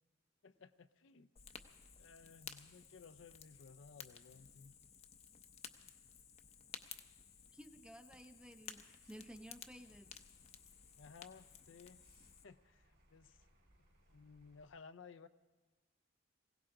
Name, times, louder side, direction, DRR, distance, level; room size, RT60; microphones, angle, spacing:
voice 1, 0.4-1.3 2.0-4.8 11.0-12.0 12.4-13.4 14.1-15.3, left 5 dB, 70° left, 10 dB, 0.6 m, -58 dB
Fire, 1.4-12.4, left 7 dB, 35° left, 0.7 m, -56 dB
voice 2, 7.5-10.1, equal, 5° right, 8 dB, 0.6 m, -55 dB
sound 1, 9.0-14.7, right 1 dB, 65° right, 4.0 m, -71 dB
21.0 x 17.0 x 3.8 m, 1.4 s
head